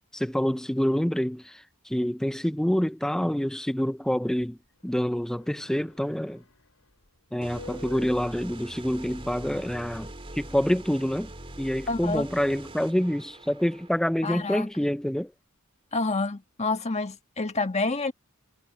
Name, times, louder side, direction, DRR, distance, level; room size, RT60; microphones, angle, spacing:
voice 1, 0.1-4.6 4.8-6.4 7.3-11.3 11.6-15.3, equal, ahead, 0.4 m, -27 dB
sound 1, 4.0-14.5 14.8-14.9, left 2 dB, 80° left, 5.0 m, -53 dB
sound 2, 7.4-13.9, right 1 dB, 25° right, 3.0 m, -43 dB
voice 2, 11.9-12.3 14.2-14.7 15.9-18.1, left 3 dB, 30° left, 1.5 m, -28 dB
head